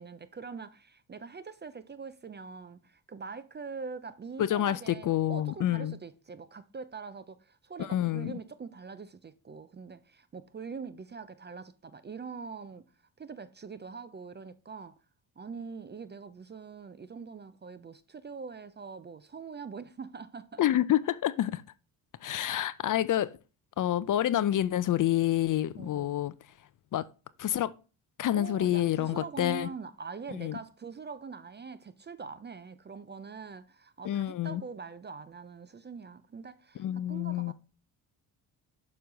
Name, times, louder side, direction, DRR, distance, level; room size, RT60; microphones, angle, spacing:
voice 1, 0.0-12.9 13.2-15.0 15.4-20.6 25.8-26.2 28.3-37.5, right 5 dB, 25° right, 0.4 m, -43 dB
voice 2, 4.4-6.0 7.8-8.3 20.6-21.6 22.2-23.3 23.8-26.3 26.9-27.0 27.4-27.7 28.2-29.7 30.4-30.6 34.0-34.6 36.8-37.5, left 12 dB, 45° left, 0.5 m, -28 dB
6.9 x 3.2 x 5.1 m
supercardioid pair, 60°, 45 cm